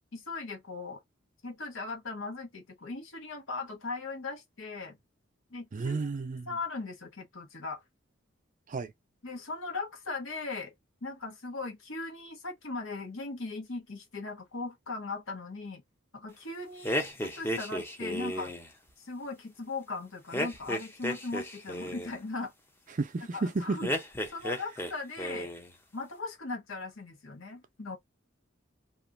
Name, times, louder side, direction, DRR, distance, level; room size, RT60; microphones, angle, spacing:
voice 1, 0.1-1.0 1.4-5.0 5.5-6.0 6.5-7.8 9.2-10.7 11.0-15.8 16.1-18.5 19.0-22.5 23.3-23.9 24.3-25.5 25.9-28.0, left 3 dB, 85° left, 1.1 m, -38 dB
voice 2, 5.7-6.5 8.7-8.9 23.0-23.9, right 3 dB, 40° right, 0.5 m, -32 dB
sound 1, 16.8-18.7 20.3-22.1 23.8-24.9 25.2-25.7, equal, 10° left, 0.6 m, -33 dB
2.9 x 2.5 x 2.4 m
head